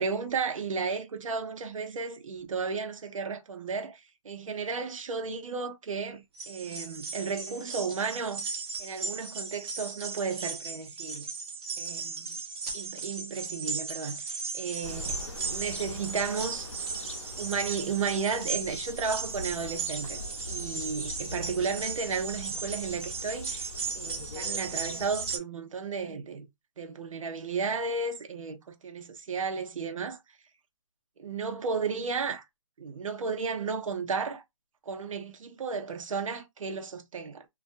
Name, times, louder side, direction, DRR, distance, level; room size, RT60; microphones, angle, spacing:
voice 1, 0.0-8.5 8.8-11.3 11.8-12.4 12.7-15.2 15.5-16.7 17.4-20.2 20.5-26.5 26.8-30.2 31.2-32.4 32.8-34.4 34.9-37.4, right 5 dB, 70° right, 0.8 m, -33 dB
sound 1, 6.4-25.4, right 4 dB, 45° right, 1.0 m, -36 dB
sound 2, 14.8-25.4, left 2 dB, 65° left, 0.8 m, -43 dB
2.4 x 2.3 x 2.5 m
hypercardioid pair, 165°, 17 cm